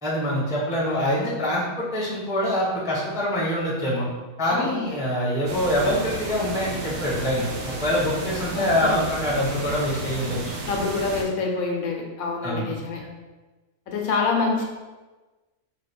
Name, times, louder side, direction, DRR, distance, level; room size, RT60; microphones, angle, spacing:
voice 1, 0.0-4.1 4.4-10.5 12.4-12.7, equal, 5° right, -5 dB, 0.4 m, -25 dB
voice 2, 4.5-4.9 8.5-9.0 10.7-13.0 13.9-14.6, left 4 dB, 90° left, 1 dB, 1.1 m, -26 dB
sound 1, 5.5-11.2, right 2 dB, 65° right, 0.9 m, -33 dB
4.5 x 2.2 x 3.3 m, 1.2 s
omnidirectional pair, 1.5 m